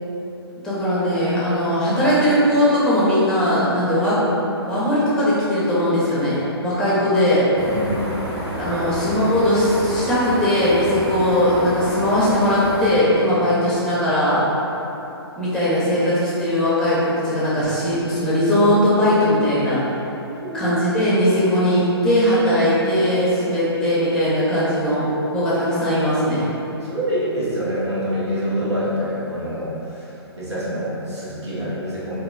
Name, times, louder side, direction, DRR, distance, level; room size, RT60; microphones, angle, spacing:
voice 1, 0.6-4.2 4.6-7.5 8.6-14.4 15.4-19.8 20.5-25.0 25.3-26.5, equal, 5° left, -10 dB, 0.6 m, -19 dB
sound 1, 7.5-12.9, equal, 30° right, 0.9 m, -30 dB
voice 2, 7.6-8.0 8.7-8.8 13.3-13.4 20.4-20.7 26.8-30.1 30.4-32.2, equal, 85° right, -9 dB, 1.0 m, -26 dB
2.9 x 2.4 x 2.3 m, 3.0 s
figure-of-eight pair, 130°, 14 cm